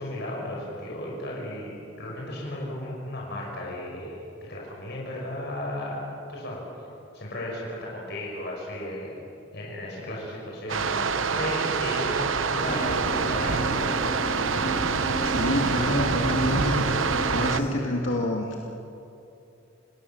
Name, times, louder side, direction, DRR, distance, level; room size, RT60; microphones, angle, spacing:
voice 1, 0.0-6.6 7.1-9.2 9.5-14.0 17.6-17.9, left 1 dB, 60° left, -3 dB, 5.8 m, -35 dB
sound 1, 10.7-17.6, right 5 dB, 80° right, 0.9 m, -26 dB
sound 2, 12.6-17.7, equal, 40° left, 5.1 m, -33 dB
voice 2, 15.2-17.0 17.3-18.6, left 1 dB, 75° left, -1 dB, 2.3 m, -27 dB
29.0 x 19.5 x 7.1 m, 2.7 s
head